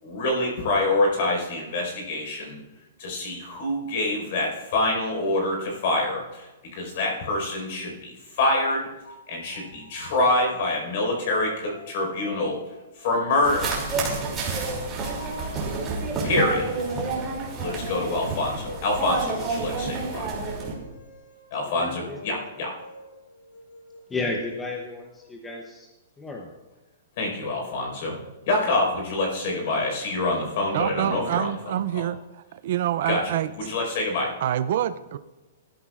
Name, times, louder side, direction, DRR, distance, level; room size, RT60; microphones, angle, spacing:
voice 1, 0.0-2.6 3.0-8.9 9.3-12.6 12.9-13.8 16.2-16.7 17.6-20.3 21.5-22.7 27.2-28.2 28.5-31.5 31.9-32.0 33.0-33.4 33.6-34.3, left 2 dB, 45° left, 1 dB, 4.7 m, -26 dB
sound 1, 9.0-13.4 13.9-25.3, left 2 dB, 80° left, 5.1 m, -47 dB
sound 2, 13.4-20.7, right 3 dB, 15° right, 2.8 m, -29 dB
voice 2, 21.8-22.2 24.1-25.9 26.2-26.5, left 2 dB, 10° left, 0 dB, 0.8 m, -32 dB
voice 3, 30.7-32.2 32.6-33.5 34.4-35.2, right 11 dB, 45° right, 12 dB, 0.4 m, -26 dB
20.5 x 13.0 x 2.5 m, 1.1 s
hypercardioid pair, 175°, 0 cm